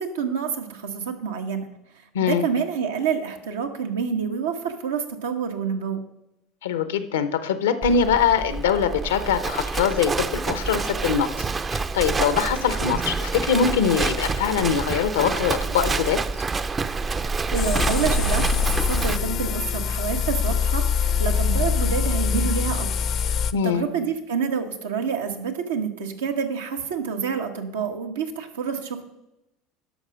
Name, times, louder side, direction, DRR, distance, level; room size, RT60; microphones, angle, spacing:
voice 1, 0.0-1.7 2.2-6.0 17.2-29.0, right 6 dB, 85° right, 4 dB, 1.3 m, -28 dB
voice 2, 2.1-2.5 6.6-16.2 23.5-23.9, left 7 dB, 85° left, 12 dB, 0.9 m, -23 dB
Livestock farm animals working animals, 7.8-19.2, right 4 dB, 25° right, 0.6 m, -27 dB
sound 1, 17.5-23.5, left 7 dB, 50° left, 0.6 m, -24 dB
11.5 x 6.1 x 6.3 m, 0.88 s
hypercardioid pair, 80°, 0 cm